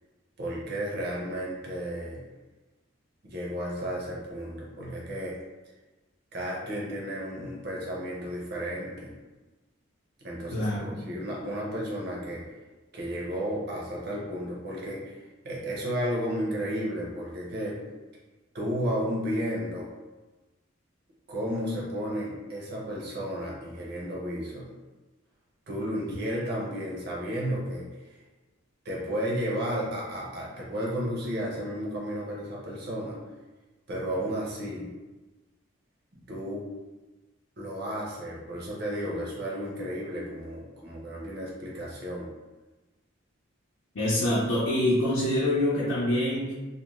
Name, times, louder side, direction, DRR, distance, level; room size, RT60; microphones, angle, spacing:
voice 1, 0.4-2.2 3.2-5.4 6.3-9.1 10.2-12.5 12.9-17.8 18.5-19.9 21.3-24.7 25.7-27.9 28.8-33.2 33.9-34.9 36.1-36.7 37.6-42.3, equal, 50° right, -4 dB, 0.7 m, -33 dB
voice 2, 10.5-11.0 43.9-46.5, left 1 dB, 85° left, -8 dB, 0.6 m, -25 dB
2.5 x 2.2 x 3.0 m, 1.2 s
head